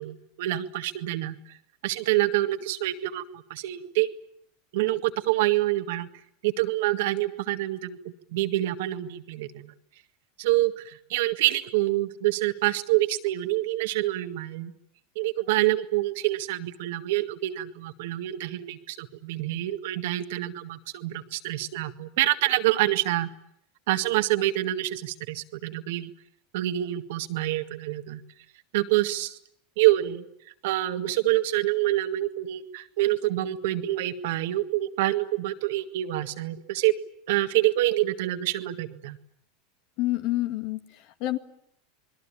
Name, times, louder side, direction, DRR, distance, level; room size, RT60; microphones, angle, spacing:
voice 1, 0.0-1.6 1.8-3.2 3.5-4.1 4.7-6.1 6.4-8.0 8.3-9.7 10.4-14.7 15.2-23.3 23.9-26.1 26.5-28.2 28.7-29.4 29.8-30.2 30.6-36.9 37.3-39.2, right 16 dB, 70° right, 9 dB, 1.7 m, -26 dB
voice 2, 40.0-41.4, left 17 dB, 60° left, 10 dB, 2.0 m, -28 dB
28.0 x 21.5 x 8.7 m, 0.71 s
hypercardioid pair, 95°, 0 cm